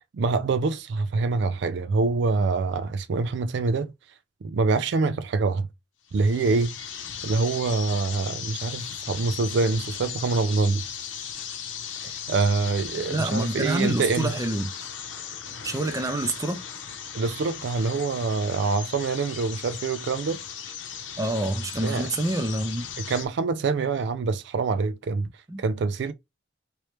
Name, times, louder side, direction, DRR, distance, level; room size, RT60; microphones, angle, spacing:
voice 1, 0.1-3.9 4.4-5.7 6.1-6.9 7.2-10.8 12.0-14.3 17.1-20.4 21.8-22.1 23.0-25.3 25.6-26.1, right 4 dB, 65° right, 0.4 m, -25 dB
sound 1, 6.1-23.3, left 8 dB, 70° left, 0.8 m, -37 dB
voice 2, 13.1-14.7 15.6-16.6 21.2-22.9 25.5-25.6, right 1 dB, 20° right, 0.6 m, -27 dB
3.1 x 3.0 x 3.2 m
head